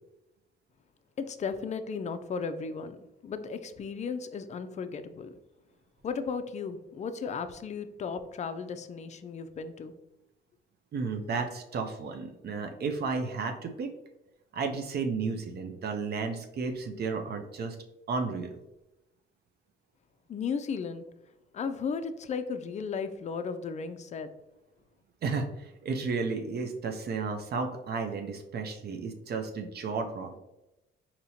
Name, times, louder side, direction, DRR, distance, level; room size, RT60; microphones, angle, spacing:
voice 1, 1.2-5.3 6.0-9.9 20.3-21.0 21.5-24.3, left 5 dB, 35° left, 10 dB, 0.4 m, -35 dB
voice 2, 10.9-13.9 14.5-17.8 18.1-18.6 25.2-30.4, right 4 dB, 55° right, 4 dB, 0.5 m, -33 dB
4.2 x 2.9 x 2.7 m, 0.95 s
cardioid pair, 90°, 20 cm